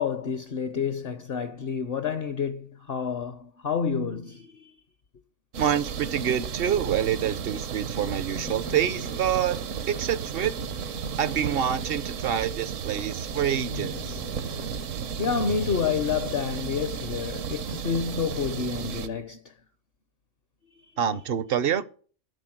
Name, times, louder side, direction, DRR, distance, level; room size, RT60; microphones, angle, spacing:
voice 1, 0.0-4.7 15.2-19.4 20.9-21.0, left 6 dB, 55° left, 0.8 m, -29 dB
sound 1, 5.5-19.1, right 7 dB, 70° right, 1.1 m, -34 dB
voice 2, 5.6-10.6 11.2-14.2 21.0-21.8, right 9 dB, 55° right, 0.7 m, -27 dB
sound 2, 7.3-9.5 10.3-12.3 13.1-16.0, left 7 dB, 70° left, 1.1 m, -43 dB
11.5 x 4.2 x 7.7 m
omnidirectional pair, 1.4 m